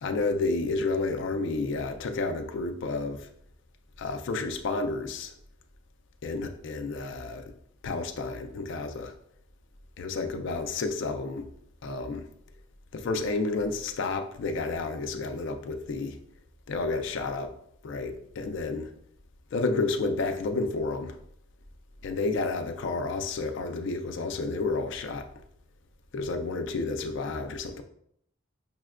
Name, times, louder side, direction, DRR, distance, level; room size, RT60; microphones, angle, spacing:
voice 1, 0.0-3.3 4.0-5.3 6.2-7.4 7.8-9.1 10.0-11.5 11.8-12.3 12.9-16.2 16.7-17.5 17.8-18.9 19.5-21.2 22.0-25.3 26.1-27.8, left 3 dB, 55° left, 6 dB, 0.3 m, -30 dB
5.4 x 2.1 x 2.4 m, 0.69 s
head